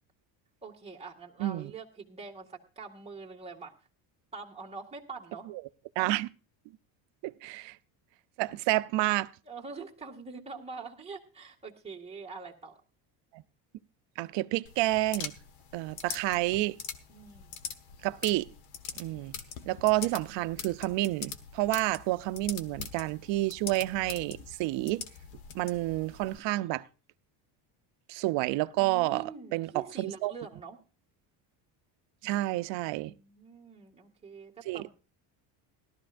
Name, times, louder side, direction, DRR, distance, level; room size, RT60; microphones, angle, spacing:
voice 1, 0.6-3.7 4.3-5.5 9.5-12.7 17.1-17.5 28.8-30.8 33.0-34.9, right 4 dB, 10° right, 1.9 m, -44 dB
voice 2, 1.4-1.7 6.0-6.3 7.2-7.8 8.4-9.3 13.3-13.4 14.2-15.3 15.7-16.8 18.0-18.5 19.0-19.4 19.7-25.0 25.5-26.8 28.1-30.3 32.2-33.1 34.7-34.9, right 18 dB, 60° right, 0.7 m, -29 dB
sound 1, 14.7-26.4, left 7 dB, 75° left, 1.3 m, -43 dB
17.5 x 13.0 x 2.5 m
cardioid pair, 145°, 48 cm